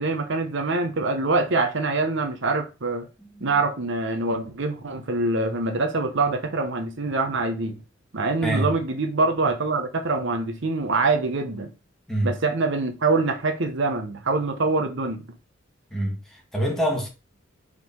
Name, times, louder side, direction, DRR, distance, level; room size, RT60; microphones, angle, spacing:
voice 1, 0.0-3.1 3.4-7.8 8.1-11.7 12.2-15.3, right 3 dB, 65° right, 0.8 m, -24 dB
voice 2, 3.2-3.6 8.4-8.7 12.1-12.4 15.9-17.1, right 1 dB, ahead, 1.7 m, -26 dB
4.8 x 3.9 x 5.3 m
head